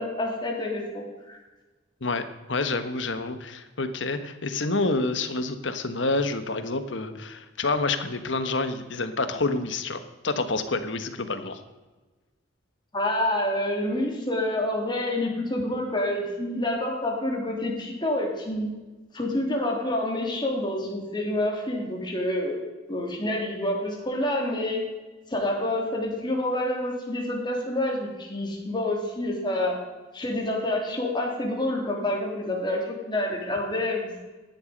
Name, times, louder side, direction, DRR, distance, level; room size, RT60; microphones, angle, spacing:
voice 1, 0.0-1.4 12.9-18.7 19.1-22.6 22.9-24.8 25.3-29.8 30.1-34.3, left 1 dB, 25° left, 0 dB, 3.3 m, -28 dB
voice 2, 2.0-11.6, left 3 dB, 70° left, 10 dB, 1.3 m, -28 dB
15.5 x 10.5 x 5.3 m, 1.2 s
head